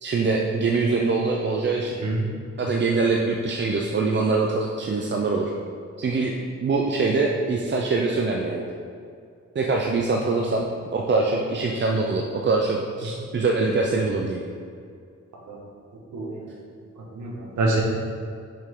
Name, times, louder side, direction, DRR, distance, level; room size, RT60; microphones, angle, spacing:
voice 1, 0.0-2.0 2.6-5.5 6.0-6.4 6.6-8.7 9.5-14.4, right 3 dB, 40° right, 0 dB, 0.6 m, -23 dB
voice 2, 16.1-16.5 17.0-17.8, right 2 dB, 85° right, -2 dB, 1.5 m, -26 dB
7.0 x 5.3 x 3.7 m, 2.4 s
cardioid pair, 95°, 29 cm